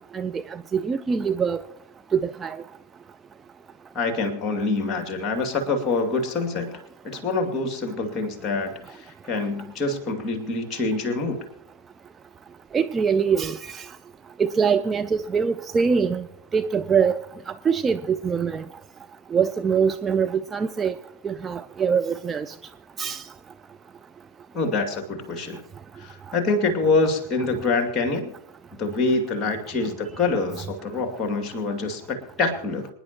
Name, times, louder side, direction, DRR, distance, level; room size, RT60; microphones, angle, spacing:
voice 1, 0.1-1.6 2.1-2.6 12.7-13.9 14.4-16.3 16.5-18.6 19.3-21.0 21.2-22.5 23.0-23.2, right 6 dB, 20° right, 0.4 m, -23 dB
voice 2, 3.9-6.7 7.0-11.4 24.5-25.6 26.0-28.3 28.8-32.9, left 3 dB, 25° left, 2.4 m, -25 dB
26.5 x 10.0 x 3.0 m
figure-of-eight pair, 90°, 0 cm